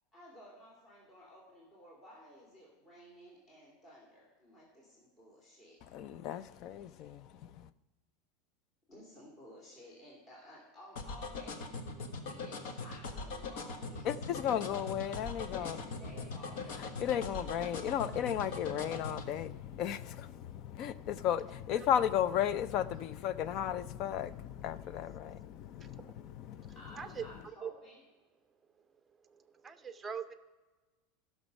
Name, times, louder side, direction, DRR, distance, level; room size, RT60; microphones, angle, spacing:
voice 1, 0.1-5.8 8.9-14.1 15.5-17.0 26.7-28.0, equal, 25° left, 2.9 m, -55 dB
voice 2, 5.8-7.7 14.0-15.8 16.7-26.8, left 10 dB, 40° left, 0.4 m, -35 dB
sound 1, 11.0-19.3, left 4 dB, 70° left, 1.4 m, -40 dB
voice 3, 29.3-30.3, right 7 dB, 15° right, 0.7 m, -41 dB
15.5 x 6.3 x 5.3 m
supercardioid pair, 155°, 0 cm